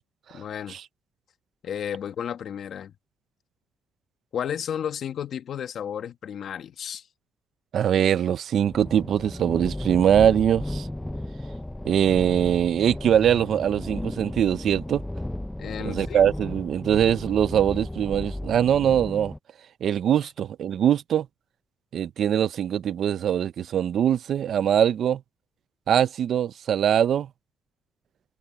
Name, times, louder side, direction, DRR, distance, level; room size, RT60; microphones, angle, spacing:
voice 1, 0.3-0.8 1.6-2.9 4.3-7.1 15.6-16.2, left 9 dB, 55° left, 1.8 m, -32 dB
voice 2, 7.7-10.9 11.8-15.0 15.8-19.3 19.8-21.3 21.9-25.2 25.9-27.3, right 9 dB, 60° right, 0.7 m, -22 dB
sound 1, 8.7-19.4, left 1 dB, 5° left, 0.5 m, -34 dB
cardioid pair, 100°, 0 cm